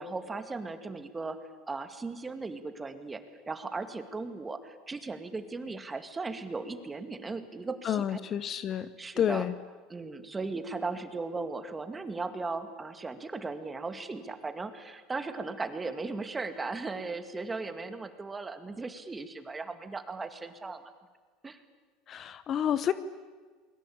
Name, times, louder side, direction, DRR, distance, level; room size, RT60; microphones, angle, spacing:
voice 1, 0.0-8.2 8.7-9.5 9.9-20.9 21.4-21.6, right 3 dB, 15° right, 9 dB, 2.1 m, -37 dB
voice 2, 7.8-8.9 9.2-9.5 22.1-22.9, left 9 dB, 35° left, 15 dB, 0.9 m, -29 dB
28.5 x 22.0 x 8.8 m, 1.4 s
supercardioid pair, 135°, 0 cm